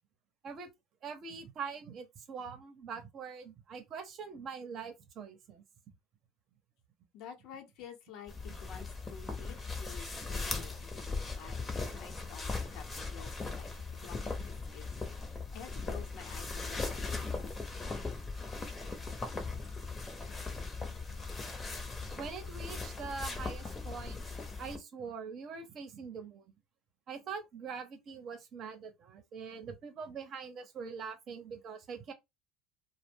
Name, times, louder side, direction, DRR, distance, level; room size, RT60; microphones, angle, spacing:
voice 1, 1.0-5.6 8.5-8.6 11.8-11.9 19.0-19.1 20.9-21.0 21.8-24.3 24.6-26.5 27.1-32.1, right 5 dB, 45° right, 0.8 m, -43 dB
voice 2, 7.1-8.3 8.6-13.7 14.0-14.9 15.5-17.1, left 8 dB, 65° left, 0.9 m, -50 dB
sound 1, 8.3-24.8, left 3 dB, 20° left, 0.8 m, -39 dB
2.2 x 2.1 x 3.5 m
supercardioid pair, 95°, 0 cm